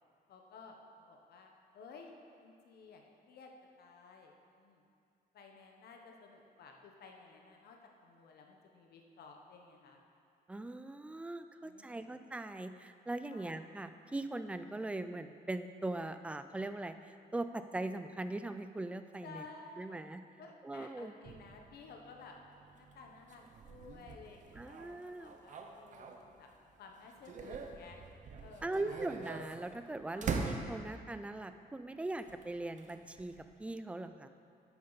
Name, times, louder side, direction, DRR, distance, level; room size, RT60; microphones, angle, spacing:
voice 1, 0.3-3.5 3.8-4.9 5.3-10.0 11.6-12.2 13.3-13.6 19.2-20.1 20.4-22.4 22.7-28.0 28.4-29.0 30.1-30.4, left 4 dB, 85° left, 2 dB, 1.1 m, -55 dB
voice 2, 10.5-19.4 19.8-20.2 20.6-21.1 24.5-25.3 28.6-33.3 33.6-34.3, right 2 dB, 10° right, 10 dB, 0.3 m, -40 dB
sound 1, 21.2-26.6 27.0-31.2 32.2-33.6, right 4 dB, 50° right, 0.8 m, -44 dB
11.0 x 8.7 x 4.0 m, 2.4 s
cardioid pair, 145°, 16 cm